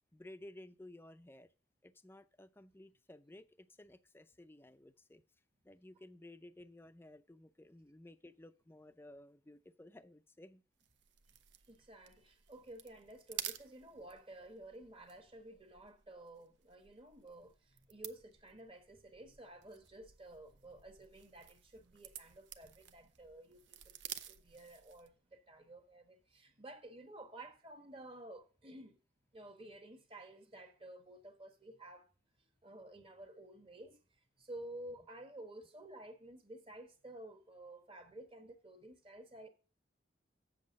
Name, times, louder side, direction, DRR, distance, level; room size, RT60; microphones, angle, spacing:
voice 1, 0.1-1.5 1.8-5.2 5.6-10.6, left 1 dB, 15° left, 0.5 m, -56 dB
sound 1, 10.8-25.2, right 11 dB, 85° right, 0.6 m, -52 dB
voice 2, 11.7-29.0 29.3-32.1 32.6-39.5, right 1 dB, 30° right, 1.2 m, -53 dB
7.6 x 7.1 x 5.2 m
head